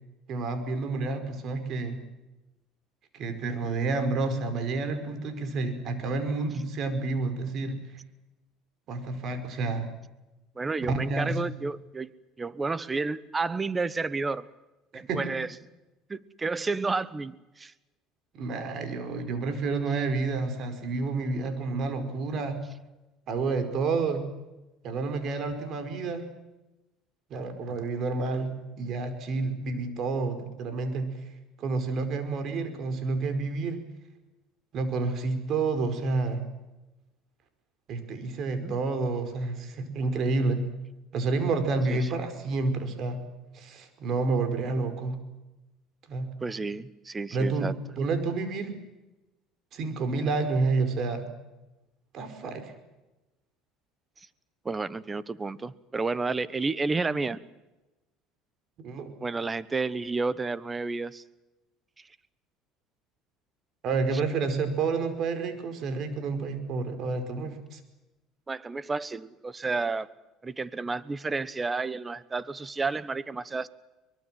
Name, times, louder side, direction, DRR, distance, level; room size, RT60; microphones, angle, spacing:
voice 1, 0.3-2.0 3.1-7.8 8.9-9.9 10.9-11.3 14.9-15.2 18.3-22.6 23.3-24.2 24.8-26.3 27.3-31.1 31.6-33.8 34.7-36.4 37.9-40.6 41.1-43.2 43.5-45.2 46.1-46.3 47.3-47.7 48.0-48.8 49.7-51.3 52.1-52.7 58.8-59.1 63.8-67.8, right 3 dB, 50° right, 8 dB, 5.0 m, -29 dB
voice 2, 10.5-12.1 12.4-14.5 14.9-15.5 16.1-17.7 38.6-38.8 41.9-42.1 46.4-47.7 54.6-57.4 59.2-61.2 62.0-62.1 68.5-70.1 70.4-73.7, right 3 dB, 20° right, 17 dB, 1.1 m, -31 dB
24.0 x 22.0 x 7.7 m, 1.0 s
supercardioid pair, 105°, 0 cm